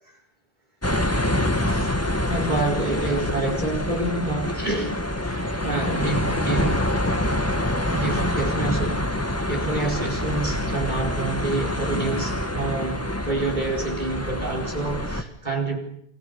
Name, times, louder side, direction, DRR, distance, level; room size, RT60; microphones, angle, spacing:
sound 1, 0.8-15.2, left 1 dB, 15° left, 1.8 m, -26 dB
voice 1, 1.6-2.0 2.3-6.9 7.9-9.0 9.5-15.8, right 2 dB, 45° right, 1 dB, 4.7 m, -28 dB
28.5 x 24.0 x 7.0 m, 0.73 s
omnidirectional pair, 1.0 m